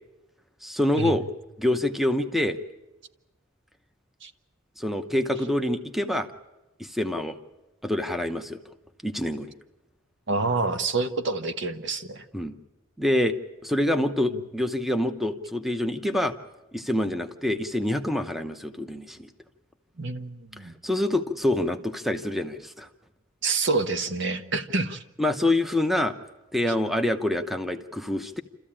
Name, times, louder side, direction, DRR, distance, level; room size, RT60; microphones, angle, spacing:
voice 1, 0.6-1.2 1.6-2.6 4.8-6.3 6.8-7.4 7.8-8.6 9.0-9.5 12.3-12.5 13.0-13.3 13.6-16.3 16.7-19.3 20.8-22.9 25.2-26.2 26.5-28.4, left 1 dB, ahead, 8 dB, 0.8 m, -26 dB
voice 2, 10.3-12.2 20.0-20.7 23.4-25.0, right 3 dB, 65° right, 9 dB, 1.1 m, -27 dB
28.5 x 14.0 x 8.8 m, 1.0 s
head